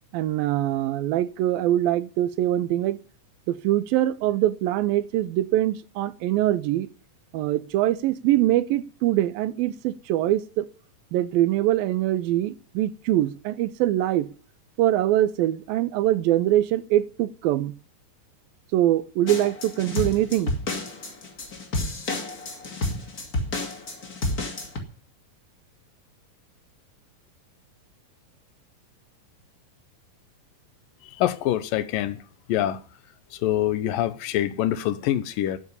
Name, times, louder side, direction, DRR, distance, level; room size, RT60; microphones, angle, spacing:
voice 1, 0.1-3.0 3.5-6.9 7.3-10.7 11.1-14.3 14.8-17.7 18.7-20.5, right 13 dB, 85° right, 2.6 m, -23 dB
sound 1, 19.3-24.8, left 2 dB, 30° left, 2.4 m, -30 dB
voice 2, 31.2-32.2 32.5-32.8 33.4-35.6, left 12 dB, 80° left, 2.6 m, -25 dB
12.5 x 9.8 x 9.7 m
omnidirectional pair, 4.1 m